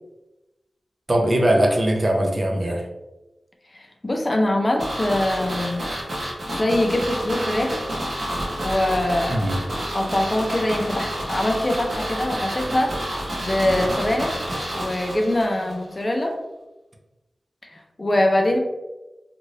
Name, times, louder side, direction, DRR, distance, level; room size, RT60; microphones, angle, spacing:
voice 1, 1.1-2.8 9.3-9.6, right 1 dB, 35° right, 1 dB, 0.5 m, -20 dB
voice 2, 3.7-5.8 6.5-7.8 8.6-9.3 9.9-12.9 13.4-14.3 14.7-16.3 17.7-18.6, left 1 dB, 30° left, 2 dB, 0.4 m, -23 dB
sound 1, 4.8-15.7 16.0-16.1, right 1 dB, 65° right, 1.0 m, -29 dB
2.7 x 2.5 x 3.1 m, 1.0 s
wide cardioid pair, 100°, 0 cm